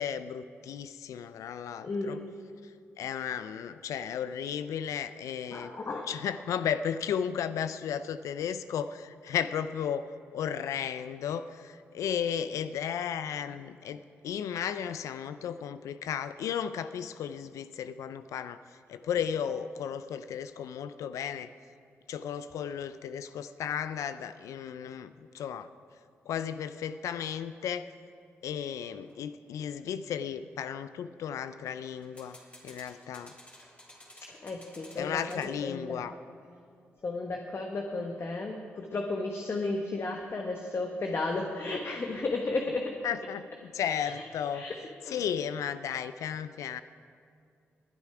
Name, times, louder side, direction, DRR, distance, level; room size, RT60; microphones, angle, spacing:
voice 1, 0.0-2.2 2.6-2.7 3.0-5.7 6.1-18.6 18.9-21.5 22.1-25.7 26.3-27.9 28.4-32.4 32.6-33.3 35.0-36.1 43.0-44.7 45.1-46.8, left 8 dB, 80° left, 12 dB, 0.4 m, -34 dB
voice 2, 1.8-2.2 5.5-6.1 34.4-36.0 37.0-42.9 44.0-44.2 44.5-44.7 45.0-45.2, left 3 dB, 50° left, 2 dB, 1.2 m, -33 dB
sound 1, 29.0-29.2 32.0-35.5, left 1 dB, 25° left, 3.0 m, -54 dB
21.0 x 8.3 x 4.8 m, 2.3 s
supercardioid pair, 50°, 5 cm